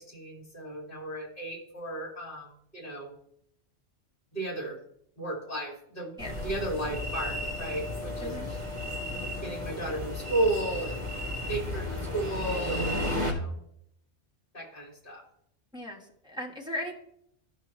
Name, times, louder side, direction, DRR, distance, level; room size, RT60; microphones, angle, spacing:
voice 1, 0.0-3.1 4.3-4.8 5.2-8.6 9.4-11.0 11.5-13.5 14.5-15.2, right 2 dB, 50° left, -2 dB, 2.5 m, -34 dB
sound 1, 6.2-13.3, left 1 dB, 30° right, 1.4 m, -33 dB
voice 2, 15.7-17.0, left 1 dB, 5° right, -2 dB, 1.3 m, -37 dB
13.0 x 5.6 x 3.1 m, 0.73 s
omnidirectional pair, 1.2 m